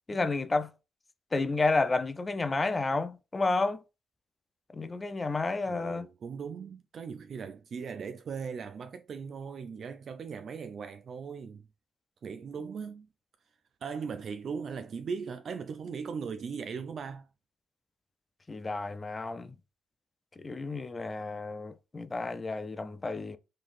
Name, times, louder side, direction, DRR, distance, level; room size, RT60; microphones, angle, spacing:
voice 1, 0.1-0.7 1.3-3.8 4.7-6.1 18.5-19.5 20.4-23.4, left 3 dB, 25° left, 0.4 m, -31 dB
voice 2, 5.7-11.7 12.2-13.1 13.8-17.3, right 6 dB, 55° right, 0.4 m, -39 dB
3.8 x 3.2 x 2.5 m
cardioid pair, 90°, 0 cm